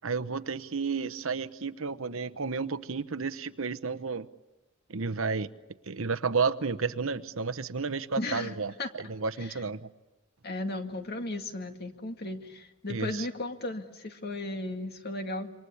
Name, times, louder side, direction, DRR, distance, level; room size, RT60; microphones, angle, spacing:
voice 1, 0.0-4.3 4.9-5.5 5.9-9.9 12.9-13.3, right 4 dB, 75° right, 1.0 m, -32 dB
voice 2, 8.2-8.9 9.4-9.6 10.4-15.5, left 2 dB, 50° left, 2.2 m, -35 dB
27.5 x 25.0 x 8.5 m
head